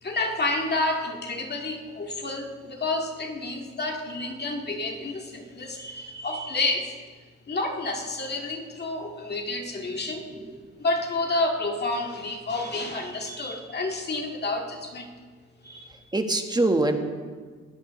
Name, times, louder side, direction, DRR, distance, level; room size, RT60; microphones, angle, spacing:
voice 1, 0.0-6.9 7.5-10.2 10.8-15.1 15.6-16.0, left 2 dB, 35° left, 2 dB, 1.9 m, -29 dB
voice 2, 9.9-10.7 15.9-17.0, right 2 dB, 15° right, 5 dB, 1.3 m, -26 dB
20.5 x 13.0 x 3.1 m, 1.5 s
cardioid pair, 90°, 30 cm